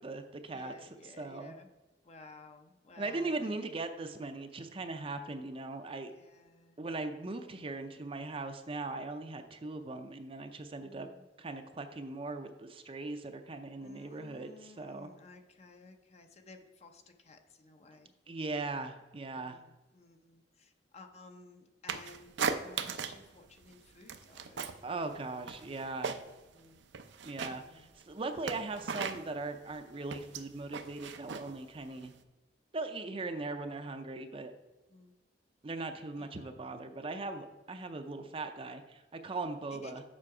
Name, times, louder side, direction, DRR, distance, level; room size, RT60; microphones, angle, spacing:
voice 1, 0.0-0.9 1.2-1.5 3.0-6.1 6.8-11.1 11.4-15.1 18.3-19.6 24.8-26.2 27.2-32.1 32.7-34.5 35.6-40.0, right 3 dB, 30° right, 7 dB, 0.5 m, -39 dB
voice 2, 0.5-1.7 2.0-3.6 6.0-6.9 10.8-11.3 13.8-18.1 19.3-25.1 26.5-26.8 27.6-27.9 33.2-33.3 34.9-35.1 36.2-36.6 39.7-40.0, left 3 dB, 35° left, 6 dB, 0.7 m, -55 dB
sound 1, 21.9-23.3 23.6-24.9 25.1-26.5 26.8-32.2, right 5 dB, 75° right, 0.6 m, -38 dB
7.5 x 5.7 x 4.8 m, 1.1 s
head